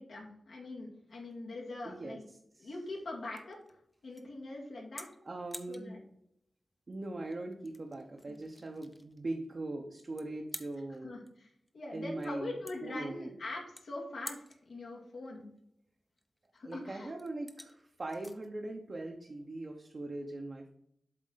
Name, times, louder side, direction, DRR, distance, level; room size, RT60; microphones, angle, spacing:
voice 1, 0.0-2.2 2.6-3.6 4.0-5.1 5.7-6.0 8.3-8.4 11.0-15.5 16.5-17.1, left 2 dB, 85° left, -4 dB, 2.2 m, -43 dB
sound 1, 1.1-19.9, left 1 dB, 10° left, 0.6 m, -53 dB
voice 2, 1.8-2.2 2.5-2.7 5.3-6.0 6.9-11.2 11.9-12.5 12.8-13.3 16.6-20.7, right 2 dB, 35° right, 1 dB, 0.7 m, -41 dB
7.5 x 4.3 x 3.9 m, 0.74 s
wide cardioid pair, 160°, 0 cm